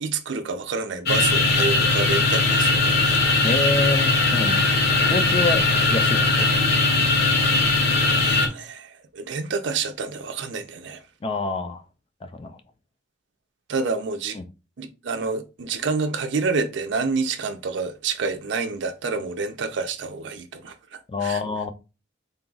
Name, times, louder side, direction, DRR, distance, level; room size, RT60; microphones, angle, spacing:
voice 1, 0.0-3.3 5.4-5.5 8.2-11.0 13.7-14.4 14.8-21.4, right 4 dB, 70° right, 0.5 m, -28 dB
sound 1, 1.1-8.5, left 3 dB, 55° left, 0.8 m, -20 dB
voice 2, 3.4-4.7 5.1-5.6 5.9-6.5 11.2-11.8 12.2-12.6 14.3-14.5 21.1-21.7, left 3 dB, 30° left, 0.4 m, -26 dB
3.9 x 2.3 x 3.8 m
head